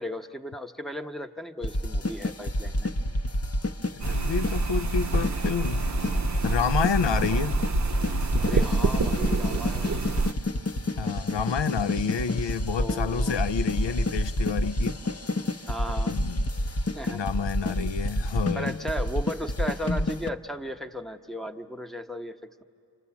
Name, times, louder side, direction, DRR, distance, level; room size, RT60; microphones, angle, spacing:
voice 1, 0.0-2.9 8.4-10.0 12.8-13.4 15.7-16.2 17.0-17.2 18.5-22.6, equal, ahead, 0.9 m, -36 dB
sound 1, 1.6-20.3, left 1 dB, 35° left, 0.7 m, -29 dB
voice 2, 3.9-5.9 6.4-7.6 11.0-15.0 16.1-16.5 17.1-18.7, left 6 dB, 80° left, 0.6 m, -29 dB
sound 2, 4.0-10.3, right 4 dB, 40° right, 0.6 m, -28 dB
29.0 x 26.5 x 7.1 m
wide cardioid pair, 45°, 43 cm